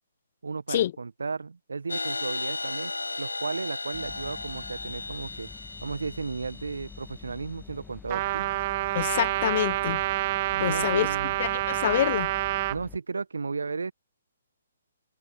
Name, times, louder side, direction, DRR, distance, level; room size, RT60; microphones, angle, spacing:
voice 1, 0.4-2.9 3.2-5.5 5.8-8.5 10.5-11.3 12.7-13.9, right 4 dB, 70° right, 1.5 m, -34 dB
sound 1, 1.9-7.5, left 3 dB, 80° left, 2.8 m, -35 dB
sound 2, 3.9-13.0, left 6 dB, 10° left, 1.8 m, -47 dB
Trumpet, 8.1-12.8, right 17 dB, 35° right, 0.8 m, -28 dB
voice 2, 8.9-10.0 10.6-11.1 11.4-12.3, left 12 dB, 40° left, 0.4 m, -26 dB
figure-of-eight pair, 130°, 0 cm